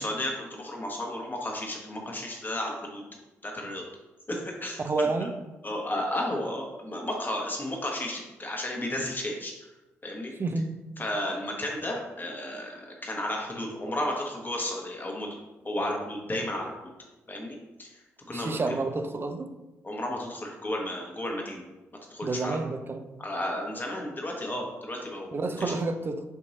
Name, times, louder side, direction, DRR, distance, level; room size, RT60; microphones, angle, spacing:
voice 1, 0.0-3.0 3.4-3.8 4.3-5.1 5.6-9.5 10.0-10.3 11.0-15.3 15.6-16.7 17.3-17.9 18.3-18.7 19.8-21.6 22.1-22.6 23.2-25.7, left 1 dB, 30° left, 0 dB, 1.3 m, -33 dB
voice 2, 4.8-5.3 10.4-10.7 18.3-19.5 22.2-23.2 25.3-26.2, right 3 dB, 35° right, 8 dB, 0.5 m, -29 dB
4.5 x 2.9 x 4.0 m, 1.1 s
hypercardioid pair, 40°, 7 cm